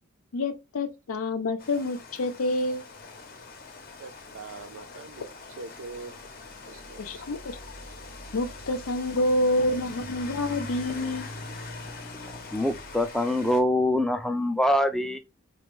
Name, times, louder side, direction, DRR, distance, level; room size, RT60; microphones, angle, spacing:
voice 1, 0.3-2.9 7.0-7.6 8.3-11.3, left 1 dB, 85° left, 0.5 m, -28 dB
Rain, 1.6-13.6, left 3 dB, 45° left, 0.6 m, -42 dB
voice 2, 4.0-5.3 5.6-6.2 6.7-7.2, right 3 dB, 70° right, 0.5 m, -43 dB
voice 3, 12.5-15.2, left 1 dB, ahead, 0.3 m, -24 dB
4.2 x 2.3 x 3.0 m
head